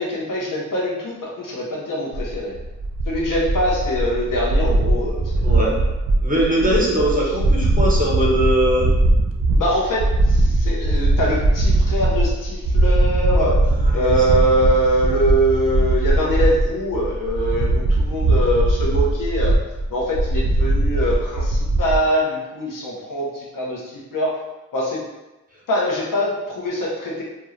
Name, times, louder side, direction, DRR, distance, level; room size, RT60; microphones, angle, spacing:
voice 1, 0.0-2.5 3.1-5.3 6.6-6.8 9.5-13.6 13.9-19.6 19.9-24.3 24.7-25.0 25.7-27.2, equal, 85° left, -4 dB, 0.7 m, -23 dB
sound 1, 2.1-22.0, right 2 dB, 45° right, 0.5 m, -20 dB
voice 2, 5.4-5.7 6.2-8.9 13.8-14.4, right 1 dB, 25° right, -3 dB, 0.9 m, -21 dB
2.4 x 2.2 x 3.0 m, 1.0 s
cardioid pair, 45°, 31 cm